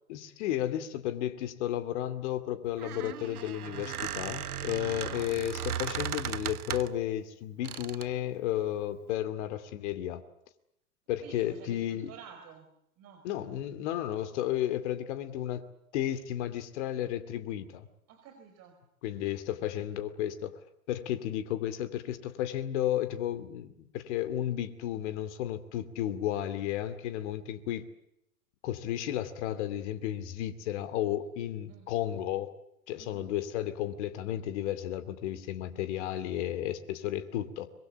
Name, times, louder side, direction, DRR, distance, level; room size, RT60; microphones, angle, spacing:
voice 1, 0.1-10.2 11.1-12.1 13.2-15.6 15.9-17.9 19.0-20.5 20.9-27.8 28.6-32.5 32.9-37.7, left 12 dB, 50° left, 11 dB, 2.5 m, -33 dB
Squeak, 2.6-7.0 7.6-8.2, right 10 dB, 75° right, 1.1 m, -37 dB
voice 2, 4.9-5.3 11.2-12.7 13.0-13.2 18.1-18.8 31.7-31.9 32.9-33.3, right 7 dB, 35° right, 5 dB, 4.7 m, -51 dB
24.5 x 23.0 x 8.0 m, 0.79 s
hypercardioid pair, 110°, 45 cm